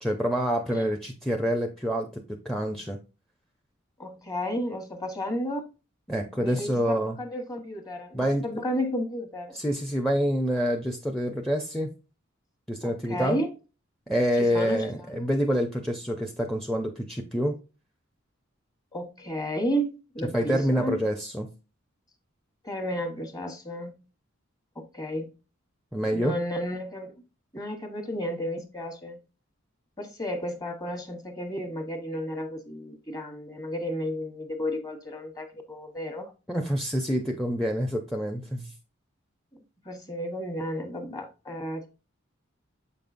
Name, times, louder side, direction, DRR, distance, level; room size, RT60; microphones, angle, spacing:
voice 1, 0.0-3.0 6.1-7.2 8.1-8.6 9.5-11.9 12.7-13.4 14.1-17.5 20.3-21.5 25.9-26.4 36.5-38.7, equal, ahead, 0.5 m, -27 dB
voice 2, 4.0-5.7 6.4-9.6 12.8-13.5 14.3-15.3 18.9-21.0 22.6-24.0 24.8-25.3 26.1-27.2 27.5-29.2 30.0-36.3 39.5-41.9, equal, 20° left, 1.1 m, -33 dB
7.5 x 5.3 x 2.5 m
head